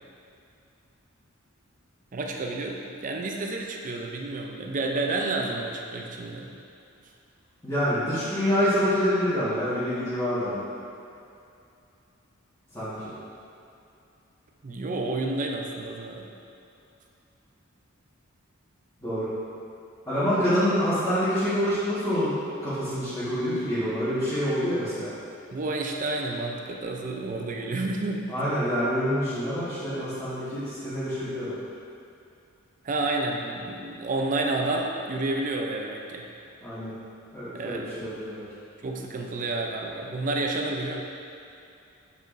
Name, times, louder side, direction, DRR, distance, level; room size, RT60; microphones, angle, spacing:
voice 1, 2.1-6.5 14.6-16.3 25.5-28.3 32.8-36.3 37.5-37.9 38.8-41.0, right 2 dB, 40° right, 1 dB, 0.5 m, -30 dB
voice 2, 7.6-10.6 12.7-13.1 19.0-19.3 20.1-22.3 22.6-25.1 28.3-31.6 36.6-36.9 37.3-38.4, equal, 15° left, -15 dB, 1.5 m, -26 dB
7.9 x 5.0 x 2.6 m, 2.6 s
head